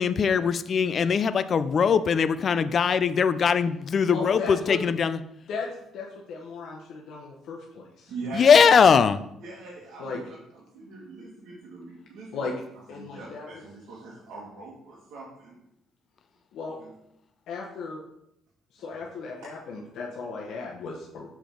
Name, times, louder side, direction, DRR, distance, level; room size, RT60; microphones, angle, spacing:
voice 1, 0.0-5.2 8.3-9.2, left 6 dB, 40° left, 13 dB, 0.3 m, -21 dB
voice 2, 4.0-4.8 5.5-8.1 8.6-8.8 10.0-10.2 12.3-12.5 12.9-13.6 16.5-16.8 17.5-18.0 18.7-21.4, left 4 dB, 70° left, -1 dB, 0.9 m, -36 dB
voice 3, 8.1-8.6 9.4-10.4 10.7-12.5 12.9-15.6 16.8-16.9, right 3 dB, 70° right, -5 dB, 1.9 m, -41 dB
6.8 x 5.0 x 3.8 m, 0.80 s
cardioid pair, 130°, 0 cm